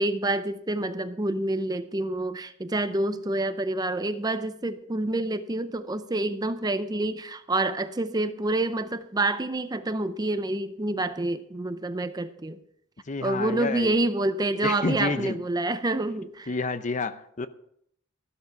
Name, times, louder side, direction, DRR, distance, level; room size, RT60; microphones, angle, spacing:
voice 1, 0.0-12.6 13.2-16.5, right 2 dB, 20° right, 0.6 m, -28 dB
voice 2, 13.1-14.0 14.6-15.4 16.5-17.5, left 3 dB, 35° left, 0.7 m, -29 dB
13.5 x 12.0 x 4.7 m
head